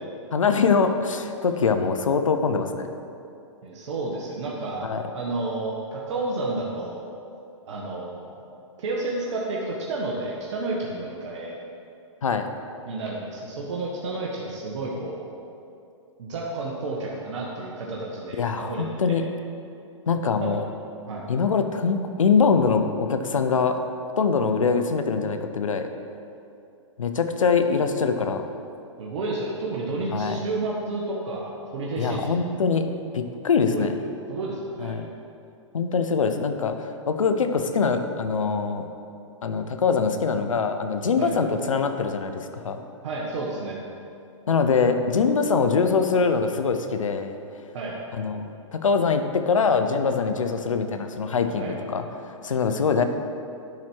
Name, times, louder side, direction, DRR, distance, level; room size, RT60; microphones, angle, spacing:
voice 1, 0.3-2.9 4.8-5.1 12.2-12.5 18.4-19.4 20.1-20.6 21.3-23.8 24.2-25.9 27.0-28.4 30.1-30.4 32.0-34.0 34.8-35.1 35.7-38.9 39.4-42.8 44.5-47.4 48.1-53.0, left 5 dB, 90° left, 8 dB, 0.7 m, -23 dB
voice 2, 3.6-7.1 7.7-8.4 8.8-11.6 12.9-15.3 16.2-19.2 20.4-20.5 21.1-21.2 29.0-32.4 33.7-33.9 34.3-35.0 41.2-41.3 43.0-43.8 47.7-48.0 51.6-51.7, right 2 dB, 65° right, -3 dB, 1.4 m, -31 dB
10.5 x 4.4 x 6.2 m, 2.7 s
hypercardioid pair, 125°, 16 cm